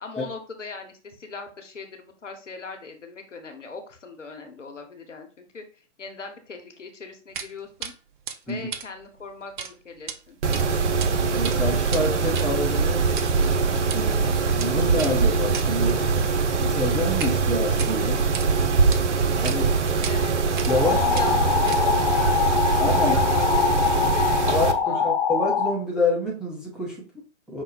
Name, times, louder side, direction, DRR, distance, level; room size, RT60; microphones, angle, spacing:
voice 1, 0.0-7.9 8.4-10.4 20.0-20.3 20.9-25.1, left 4 dB, 90° left, 4 dB, 1.2 m, -39 dB
sound 1, 7.3-7.5 7.8-7.9 8.3-9.7 10.0-10.2 10.5-11.1 11.4-17.4 17.7-18.5 18.9-19.0 19.4-19.6 20.0-20.1 20.6-20.9 21.1-22.1, right 7 dB, 45° right, 0.6 m, -36 dB
Mechanisms, 10.4-24.7, right 4 dB, 75° right, 0.7 m, -23 dB
voice 2, 11.3-13.2 13.9-16.0 16.6-18.3 19.4-19.8 20.7-21.0 22.8-23.2 24.4-27.6, left 1 dB, ahead, -6 dB, 0.7 m, -27 dB
sound 2, 20.7-25.7, left 7 dB, 35° left, 0.4 m, -23 dB
5.5 x 2.1 x 4.1 m, 0.37 s
hypercardioid pair, 130°, 36 cm